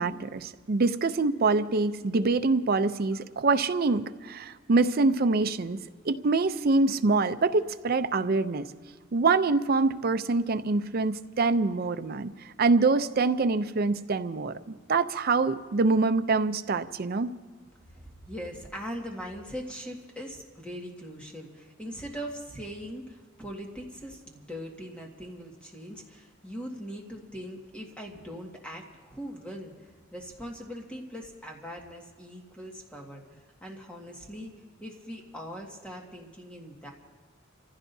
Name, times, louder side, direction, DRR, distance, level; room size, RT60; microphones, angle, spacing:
voice 1, 0.0-5.8 6.0-8.7 9.1-17.3, right 3 dB, 50° right, 10 dB, 0.5 m, -25 dB
voice 2, 17.9-29.7 30.1-33.2 33.6-34.5 34.8-36.9, equal, 5° left, -1 dB, 1.8 m, -41 dB
29.5 x 15.5 x 2.7 m, 1.4 s
head